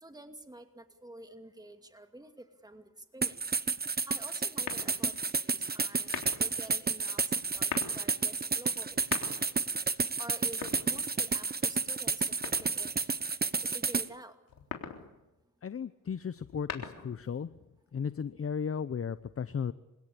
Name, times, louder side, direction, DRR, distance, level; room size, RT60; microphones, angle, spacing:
voice 1, 0.0-3.6 4.1-5.1 5.4-9.5 10.2-12.9 13.6-14.4, right 1 dB, 10° right, 6 dB, 2.5 m, -49 dB
sound 1, 3.2-14.1, right 4 dB, 25° right, 1.1 m, -31 dB
sound 2, 4.6-5.2 6.0-6.6 7.5-8.0 8.9-9.6 10.5-11.4 12.4-13.0 14.5-15.1 16.4-17.2, left 7 dB, 75° left, 3.8 m, -40 dB
voice 2, 15.6-17.5 17.9-19.7, left 6 dB, 40° left, 13 dB, 0.9 m, -35 dB
28.0 x 17.0 x 8.5 m, 0.98 s
cardioid pair, 65°, 34 cm